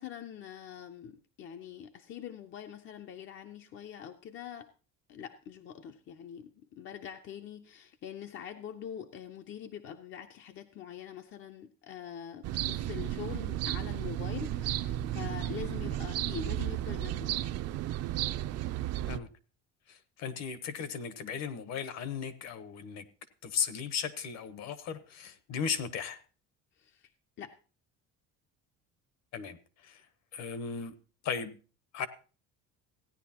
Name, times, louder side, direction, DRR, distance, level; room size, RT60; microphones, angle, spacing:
voice 1, 0.0-4.7 5.1-17.4 26.7-27.1 27.4-27.5, left 9 dB, 40° left, 0.5 m, -44 dB
sound 1, 12.4-19.2, right 13 dB, 50° right, 0.5 m, -33 dB
voice 2, 19.9-23.0 23.4-26.2 29.3-29.6 29.8-30.0 30.3-30.9 31.2-31.5 31.9-32.1, left 7 dB, 55° left, 1.0 m, -36 dB
16.0 x 10.0 x 2.9 m
cardioid pair, 170°, 32 cm